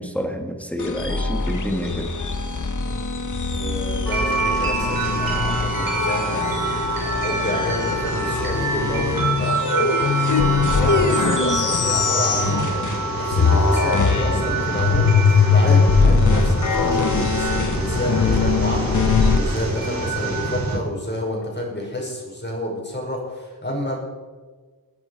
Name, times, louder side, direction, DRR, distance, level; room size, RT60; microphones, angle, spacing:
voice 1, 0.0-2.1, equal, 5° left, 3 dB, 2.3 m, -28 dB
sound 1, 0.8-13.1 13.3-19.4, left 5 dB, 50° left, 1.3 m, -21 dB
voice 2, 3.5-6.8 7.2-24.0, equal, 25° left, -1 dB, 5.5 m, -29 dB
sound 2, 4.1-20.8, right 3 dB, 60° right, 3.7 m, -26 dB
20.0 x 9.9 x 4.9 m, 1.4 s
cardioid pair, 60°, 39 cm